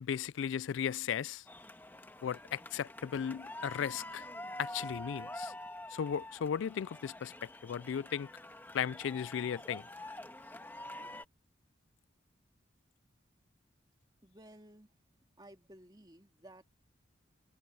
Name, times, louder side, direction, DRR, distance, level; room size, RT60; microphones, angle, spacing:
voice 1, 0.0-1.4 2.2-4.2 4.6-5.5 5.9-7.3 7.6-8.3 8.7-9.8, left 8 dB, 75° left, 0.3 m, -36 dB
sound 1, 1.5-11.3, left 1 dB, 10° left, 1.4 m, -47 dB
voice 2, 14.2-15.0 15.4-16.8, right 1 dB, 20° right, 2.1 m, -56 dB
head